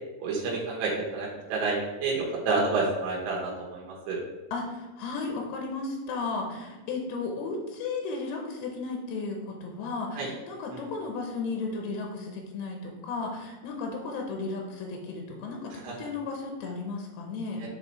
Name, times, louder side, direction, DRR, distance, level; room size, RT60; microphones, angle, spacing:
voice 1, 0.2-4.2 10.2-10.3 10.7-10.8 15.7-16.0, right 3 dB, 90° right, -4 dB, 3.0 m, -29 dB
voice 2, 4.5-17.6, left 3 dB, 85° left, 1 dB, 2.9 m, -34 dB
8.0 x 4.1 x 3.1 m, 1.2 s
omnidirectional pair, 4.5 m